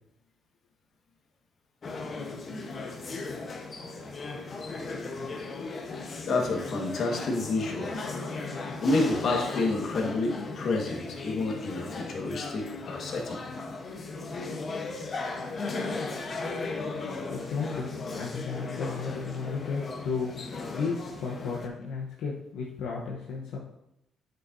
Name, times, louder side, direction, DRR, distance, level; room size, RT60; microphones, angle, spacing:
sound 1, 1.8-21.7, left 3 dB, 45° left, 1.0 m, -37 dB
voice 1, 6.2-8.0 8.8-13.4, left 2 dB, 60° left, 1 dB, 1.5 m, -29 dB
voice 2, 17.3-23.6, left 5 dB, 85° left, -3 dB, 0.9 m, -34 dB
8.1 x 6.5 x 2.7 m, 0.83 s
cardioid pair, 90°, 0 cm